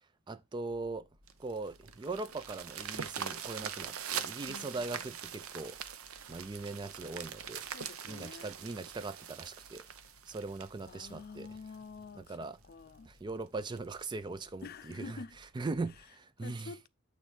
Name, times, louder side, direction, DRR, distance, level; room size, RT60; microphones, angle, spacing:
voice 1, 0.3-1.0 1.4-5.8 6.3-7.6 8.1-9.8 10.3-11.5 12.1-12.6 13.0-15.2 15.5-16.7, right 3 dB, 20° right, 0.3 m, -40 dB
sound 1, 0.5-16.0, left 1 dB, 65° right, 1.4 m, -65 dB
sound 2, 1.3-11.8 12.3-12.4 12.9-13.0 13.3-13.4 13.8-14.0 14.9-15.0, right 8 dB, 80° right, 0.8 m, -42 dB
voice 2, 4.5-5.2 7.6-8.6 10.9-12.4 12.6-13.1 14.6-15.4 16.4-16.9, left 4 dB, 45° left, 0.4 m, -48 dB
8.8 x 3.2 x 4.8 m
head